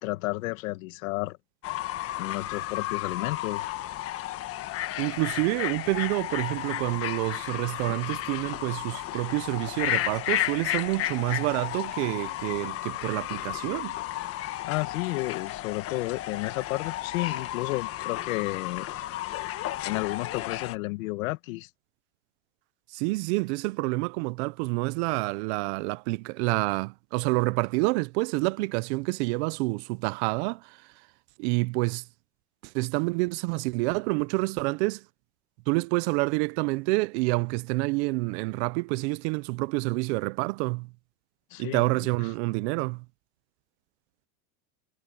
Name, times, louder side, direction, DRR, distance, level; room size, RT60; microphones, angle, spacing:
voice 1, 0.0-1.4 2.2-3.7 14.6-18.9 19.8-21.7 41.5-41.8, left 21 dB, 65° left, 1.8 m, -32 dB
Fowl / Bird, 1.6-20.8, left 14 dB, 30° left, 1.4 m, -33 dB
voice 2, 5.0-13.9 22.9-30.8 31.4-32.0 32.7-35.0 35.7-40.9 41.6-43.0, right 25 dB, 50° right, 0.7 m, -28 dB
supercardioid pair, 150°, 43 cm